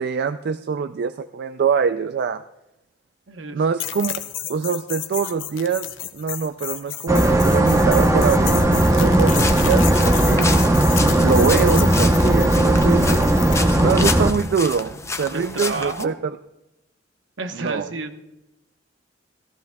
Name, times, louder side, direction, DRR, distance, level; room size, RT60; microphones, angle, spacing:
voice 1, 0.0-2.4 3.5-4.1 4.5-5.9 6.1-10.6 11.2-13.3 13.8-16.4 17.5-17.9, right 6 dB, 55° right, 10 dB, 0.3 m, -24 dB
voice 2, 3.3-3.6 15.3-16.1 17.4-18.2, right 3 dB, 75° right, 6 dB, 1.0 m, -30 dB
sound 1, 3.8-13.6, left 12 dB, 85° left, 0.7 m, -32 dB
sound 2, 7.1-14.3, right 1 dB, 15° right, 0.8 m, -17 dB
sound 3, 9.4-16.0, left 4 dB, 15° left, 0.5 m, -30 dB
15.0 x 14.5 x 2.3 m, 0.93 s
head